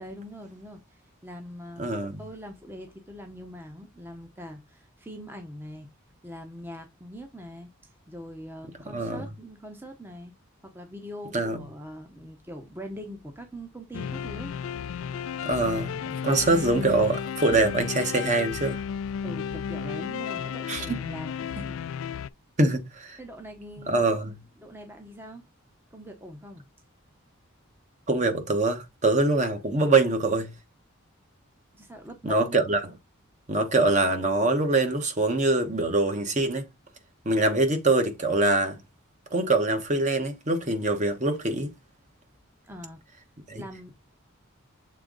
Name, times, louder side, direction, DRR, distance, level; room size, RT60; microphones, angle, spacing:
voice 1, 0.0-5.9 6.2-10.3 10.6-14.5 15.5-16.2 19.2-21.8 23.2-24.2 24.6-25.4 25.9-26.7 31.7-32.6 42.6-43.0 43.5-43.9, equal, 10° right, 0.8 m, -42 dB
voice 2, 1.8-2.2 8.9-9.3 11.3-11.6 15.4-15.9 16.2-18.8 20.7-21.0 22.6-23.2 23.9-24.4 28.1-30.5 32.2-32.8 33.5-36.7 37.2-38.8 39.3-41.7 43.5-43.6, right 2 dB, 35° right, 1.1 m, -24 dB
sound 1, 13.9-22.3, left 7 dB, 65° left, 0.3 m, -33 dB
6.7 x 3.6 x 3.8 m
head